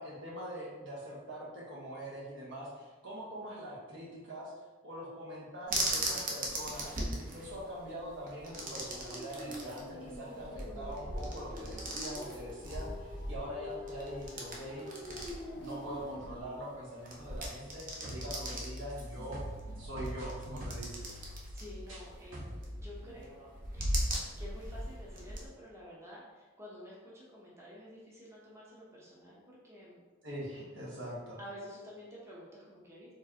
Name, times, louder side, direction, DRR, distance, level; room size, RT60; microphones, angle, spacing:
voice 1, 0.0-4.5 4.8-19.4 19.8-21.1 30.2-31.4, equal, 65° right, -5 dB, 1.3 m, -43 dB
sound 1, 5.7-25.5, right 1 dB, 45° right, 0.8 m, -40 dB
sound 2, 8.4-16.4, left 1 dB, 55° left, 0.6 m, -46 dB
sound 3, 17.5-22.0 22.3-22.8, equal, 85° right, 1.3 m, -44 dB
voice 2, 21.1-30.0 31.4-33.1, equal, 15° right, -6 dB, 0.8 m, -50 dB
4.4 x 3.3 x 2.9 m, 1.2 s
head